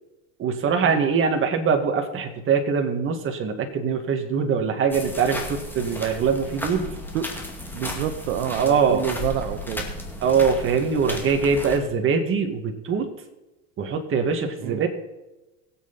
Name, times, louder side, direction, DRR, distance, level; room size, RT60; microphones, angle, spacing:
voice 1, 0.4-6.9 8.6-9.0 10.2-13.1 13.8-14.9, right 6 dB, 35° right, 4 dB, 2.1 m, -23 dB
sound 1, 4.9-11.8, left 1 dB, 5° left, 2.3 m, -34 dB
voice 2, 7.7-8.6 8.9-9.9 14.6-14.8, right 10 dB, 75° right, 8 dB, 1.2 m, -28 dB
22.0 x 8.1 x 4.3 m, 1.0 s
supercardioid pair, 115°, 37 cm